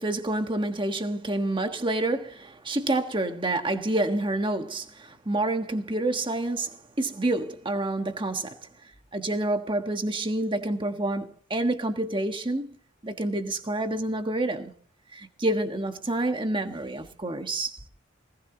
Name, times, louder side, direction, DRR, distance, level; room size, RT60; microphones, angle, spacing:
voice 1, 0.0-8.6 9.1-12.7 13.0-14.7 15.1-17.8, right 2 dB, 25° right, 1.4 m, -28 dB
21.5 x 19.0 x 2.9 m
head